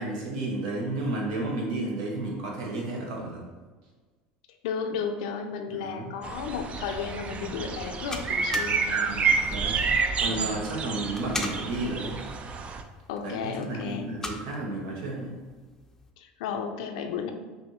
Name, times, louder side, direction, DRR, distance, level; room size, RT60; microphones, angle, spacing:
voice 1, 0.0-3.5 5.7-6.1 8.9-12.2 13.2-15.3, right 2 dB, 80° right, -1 dB, 1.2 m, -32 dB
voice 2, 4.6-9.4 10.2-10.5 13.1-14.1 16.2-17.3, left 6 dB, 85° left, 5 dB, 0.5 m, -34 dB
sound 1, 6.2-12.8, right 5 dB, 35° right, 0.4 m, -29 dB
sound 2, 6.9-16.1, left 2 dB, 10° left, 0.5 m, -42 dB
5.5 x 2.6 x 3.0 m, 1.3 s
supercardioid pair, 100°, 4 cm